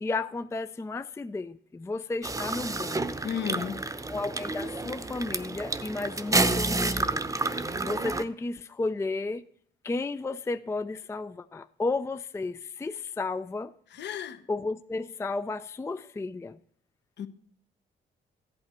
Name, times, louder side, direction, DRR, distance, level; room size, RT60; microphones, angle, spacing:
voice 1, 0.0-3.2 4.1-7.2 7.6-9.5 9.8-13.7 14.5-16.6, left 3 dB, 15° left, 0.4 m, -33 dB
sound 1, 2.2-8.2, right 2 dB, 15° right, 0.8 m, -30 dB
voice 2, 3.2-3.8 13.9-14.4 17.2-17.3, left 8 dB, 60° left, 0.9 m, -33 dB
14.5 x 8.6 x 4.4 m
cardioid pair, 90°, 20 cm